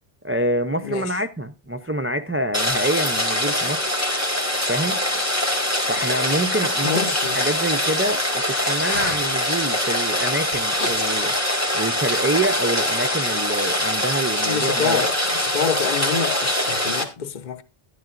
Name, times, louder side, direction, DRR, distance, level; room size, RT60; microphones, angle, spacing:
voice 1, 0.2-3.9 4.6-5.0 5.9-11.3 11.7-15.1, right 1 dB, 20° right, 0.3 m, -26 dB
voice 2, 0.8-1.1 6.8-7.4 14.4-17.6, left 6 dB, 50° left, 0.9 m, -27 dB
Rain, 2.5-17.0, left 1 dB, 15° left, 1.8 m, -23 dB
Breathing, 2.7-11.2, left 2 dB, 90° left, 1.9 m, -37 dB
12.0 x 11.0 x 2.5 m
omnidirectional pair, 1.0 m